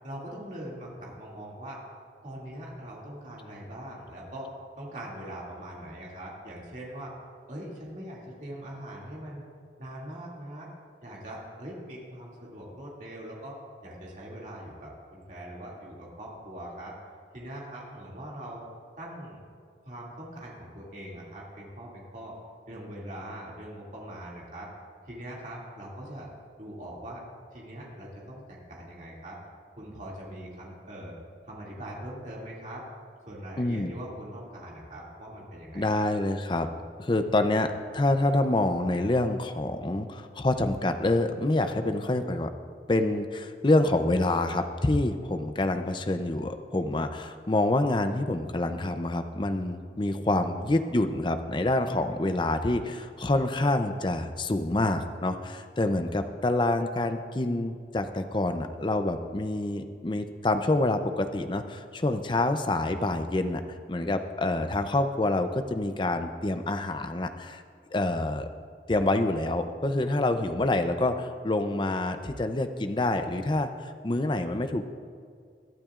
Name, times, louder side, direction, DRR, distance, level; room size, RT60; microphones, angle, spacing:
voice 1, 0.0-1.8 2.2-4.5 4.8-7.1 7.5-9.4 9.8-10.7 11.0-13.6 13.8-16.9 17.3-18.6 19.0-19.4 19.8-22.4 22.7-24.7 25.0-26.3 26.6-27.2 27.5-29.4 29.8-31.1 31.5-32.8 33.3-36.1, right 1 dB, 45° right, -4 dB, 2.5 m, -41 dB
voice 2, 33.6-33.9 35.7-36.7 37.0-37.7 37.9-42.5 42.9-63.6 63.9-67.6 67.9-68.5 68.9-74.8, left 2 dB, 25° left, 8 dB, 0.6 m, -27 dB
21.0 x 12.0 x 2.5 m, 2.2 s
head